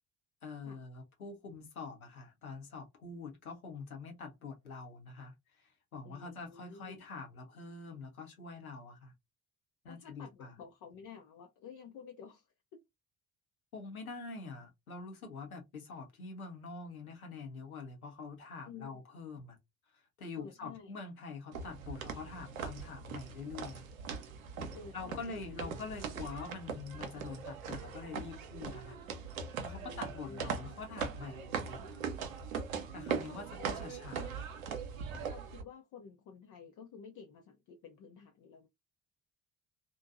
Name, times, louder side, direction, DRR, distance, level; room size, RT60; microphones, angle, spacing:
voice 1, 0.4-9.1 9.8-10.5 13.7-19.6 19.9-23.8 24.9-29.0 29.6-31.8 32.9-34.4, left 4 dB, 85° left, 0.8 m, -45 dB
voice 2, 6.0-7.0 9.9-12.5 18.6-19.0 20.4-20.9 24.7-25.7 26.2-26.3 29.7-30.7 33.6-33.7 35.1-38.7, left 6 dB, 45° left, 0.6 m, -52 dB
sound 1, 21.5-35.6, right 6 dB, 75° right, 0.7 m, -41 dB
2.6 x 2.2 x 2.5 m
figure-of-eight pair, 50°, 42 cm